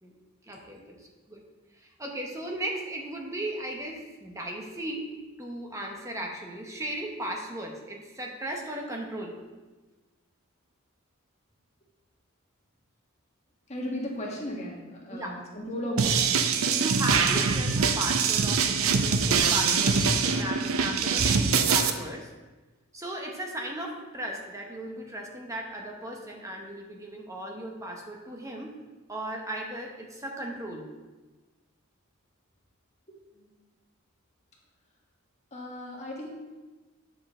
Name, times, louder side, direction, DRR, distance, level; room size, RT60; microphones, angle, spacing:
voice 1, 0.4-1.4 1.8-5.1 5.4-9.4 15.1-15.3 15.8-16.0 16.7-22.3 22.9-28.7 29.1-30.9, right 1 dB, 15° right, 0 dB, 1.1 m, -36 dB
voice 2, 13.7-16.2 33.3-33.5 35.5-36.3, equal, 30° left, -3 dB, 1.8 m, -35 dB
sound 1, 16.0-21.9, right 5 dB, 75° right, 0.6 m, -24 dB
9.6 x 6.7 x 3.7 m, 1.2 s
head